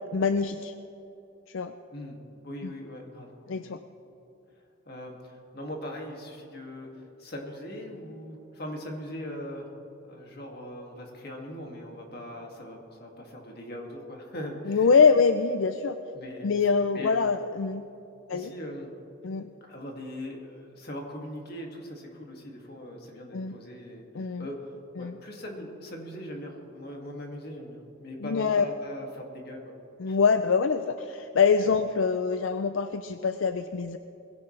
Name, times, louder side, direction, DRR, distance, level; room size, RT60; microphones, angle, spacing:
voice 1, 0.1-0.7 1.5-1.7 3.5-3.8 14.7-15.9 16.4-17.8 18.3-18.5 19.2-19.5 23.3-23.5 24.1-24.5 25.0-25.1 28.2-28.6 30.0-34.0, left 5 dB, 75° left, 10 dB, 0.5 m, -24 dB
voice 2, 1.9-3.6 4.9-9.7 10.1-14.9 16.1-16.5 16.9-17.2 18.3-18.9 19.6-24.7 25.0-29.8 30.1-30.2 31.6-31.8, left 1 dB, 50° left, 0 dB, 2.3 m, -40 dB
21.0 x 16.5 x 3.3 m, 2.9 s
head